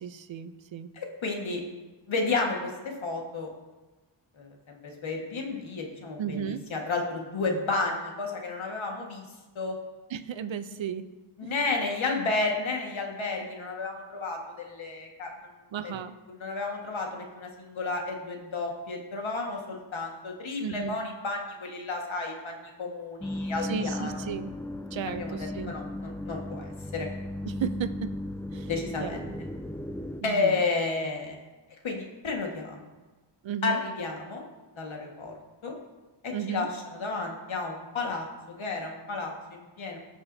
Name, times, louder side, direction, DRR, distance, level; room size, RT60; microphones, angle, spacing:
voice 1, 0.0-0.9 6.2-6.6 10.1-11.1 11.4-11.5 15.7-16.2 20.6-21.0 23.6-24.6 24.9-25.8 27.4-28.1 28.5-29.2 30.2-30.6 33.4-33.8 36.3-36.7, right 8 dB, 70° right, 12 dB, 0.7 m, -34 dB
voice 2, 0.9-1.6 2.1-3.5 4.4-9.2 9.6-9.8 11.4-15.3 15.8-15.9 16.4-24.1 25.1-27.1 28.7-29.2 30.2-31.4 31.8-32.9 33.6-34.4 34.8-35.3 35.6-35.8 36.5-40.0, left 3 dB, 80° left, 1 dB, 1.7 m, -32 dB
sound 1, 23.2-30.2, left 1 dB, 5° left, 0.4 m, -36 dB
17.0 x 6.1 x 2.7 m, 1.2 s
cardioid pair, 70°, 47 cm